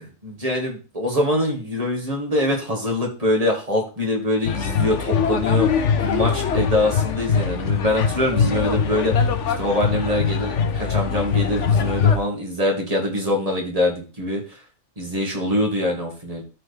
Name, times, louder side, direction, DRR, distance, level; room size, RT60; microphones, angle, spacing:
voice 1, 0.2-5.7 6.0-9.1 9.6-14.4 15.0-16.4, left 1 dB, 25° right, -1 dB, 2.4 m, -24 dB
sound 1, 4.4-12.2, left 6 dB, 65° left, 1.1 m, -22 dB
13.0 x 4.5 x 3.5 m, 0.33 s
omnidirectional pair, 1.4 m